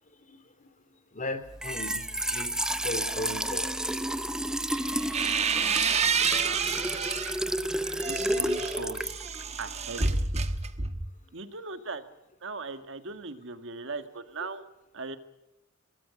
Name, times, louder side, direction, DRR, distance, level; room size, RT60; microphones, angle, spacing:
voice 1, 1.1-4.1, left 1 dB, 40° left, 11 dB, 2.4 m, -37 dB
Trickle dribble / Fill (with liquid), 1.5-10.2, right 1 dB, 5° right, 0.7 m, -32 dB
sound 1, 4.7-7.4 7.8-11.2, right 5 dB, 30° right, 1.3 m, -29 dB
voice 2, 8.0-9.0 9.6-10.2 11.3-12.0 12.4-14.6 14.9-15.2, right 3 dB, 65° right, 9 dB, 1.8 m, -38 dB
23.5 x 18.0 x 8.5 m, 0.97 s
head